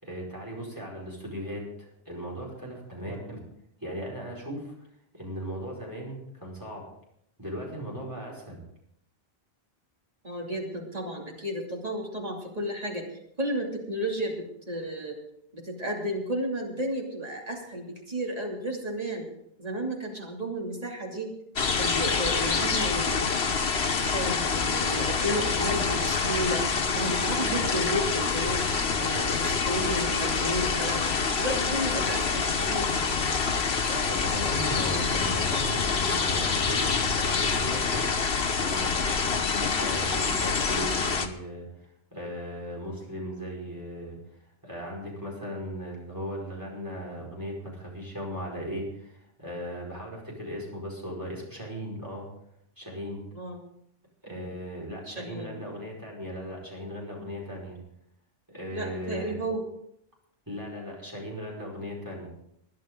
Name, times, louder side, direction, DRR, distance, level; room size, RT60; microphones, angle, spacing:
voice 1, 0.0-3.4 3.8-4.7 5.1-6.9 7.4-8.6 33.9-38.1 38.6-41.7 42.1-44.2 44.6-52.3 52.8-53.2 54.2-57.8 58.5-59.4 60.5-62.3, equal, 20° right, -3 dB, 5.1 m, -37 dB
voice 2, 10.2-13.0 13.4-15.2 15.5-19.3 19.6-21.3 21.8-23.3 23.8-26.7 26.9-28.7 29.0-31.1 31.4-32.9 53.3-53.6 54.3-54.6 55.1-55.8 58.7-59.6, equal, 40° right, -1 dB, 2.9 m, -32 dB
sound 1, 21.6-41.3, left 5 dB, 90° left, 1.4 m, -26 dB
21.5 x 10.5 x 3.8 m, 0.75 s
omnidirectional pair, 1.0 m